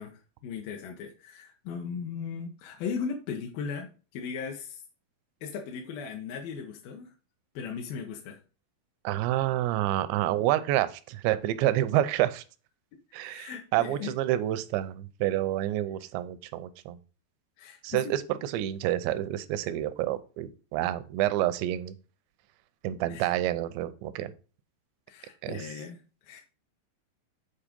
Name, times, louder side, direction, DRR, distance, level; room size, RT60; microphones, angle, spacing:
voice 1, 0.0-4.8 5.4-7.1 7.6-8.4 13.2-14.2 17.6-18.1 23.1-23.3 25.1-26.4, left 6 dB, 70° left, 1 dB, 2.4 m, -38 dB
voice 2, 9.0-12.4 13.1-17.0 17.8-21.9 22.8-24.3 25.4-25.7, right 13 dB, 85° right, 13 dB, 2.9 m, -28 dB
8.7 x 4.6 x 5.2 m, 0.35 s
omnidirectional pair, 5.0 m